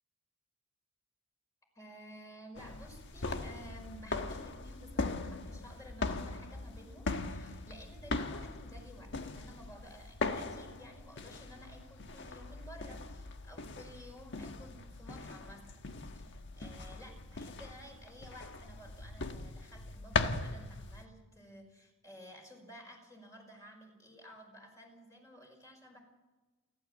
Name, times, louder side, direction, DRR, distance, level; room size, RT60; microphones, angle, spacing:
voice 1, 1.8-15.8 16.2-26.0, equal, 15° left, 2 dB, 5.2 m, -53 dB
sound 1, 2.6-21.1, left 3 dB, 55° left, 1.3 m, -40 dB
29.5 x 12.0 x 8.0 m, 1.2 s
head